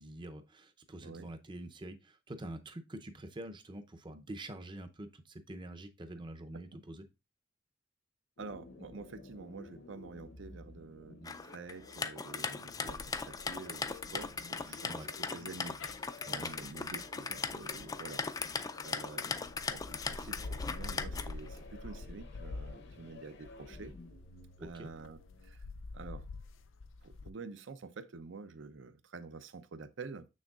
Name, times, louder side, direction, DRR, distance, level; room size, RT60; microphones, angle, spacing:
voice 1, 0.0-7.1 14.9-15.1 16.3-16.6 24.6-24.9, right 1 dB, 25° right, 0.6 m, -46 dB
sound 1, 8.4-25.5, left 2 dB, 60° left, 0.8 m, -54 dB
voice 2, 8.4-15.8 16.3-19.3 19.7-23.9 24.6-25.7 25.9-26.2 27.0-30.3, right 4 dB, 70° right, 0.6 m, -48 dB
sound 2, 11.2-21.6, left 5 dB, 20° left, 0.3 m, -39 dB
sound 3, 12.9-18.9 19.4-27.3, left 3 dB, 85° left, 0.5 m, -47 dB
7.2 x 6.3 x 2.4 m
head